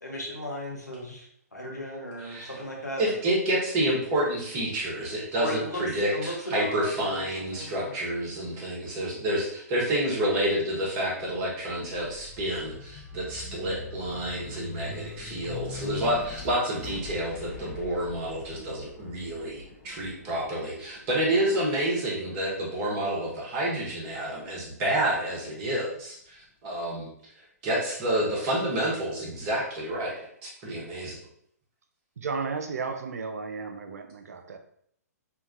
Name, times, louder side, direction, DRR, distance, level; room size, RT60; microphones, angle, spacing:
voice 1, 0.0-3.0 5.4-8.0, equal, 85° left, -2 dB, 0.9 m, -36 dB
voice 2, 2.2-2.5 3.0-27.1 27.6-31.2, right 1 dB, 30° right, -5 dB, 1.0 m, -29 dB
Build up Detonation, 11.8-22.0 22.5-23.7, left 4 dB, 25° left, 0.7 m, -43 dB
voice 3, 32.2-34.6, right 4 dB, 65° right, 6 dB, 0.4 m, -33 dB
2.7 x 2.2 x 2.5 m, 0.67 s
figure-of-eight pair, 120°, 9 cm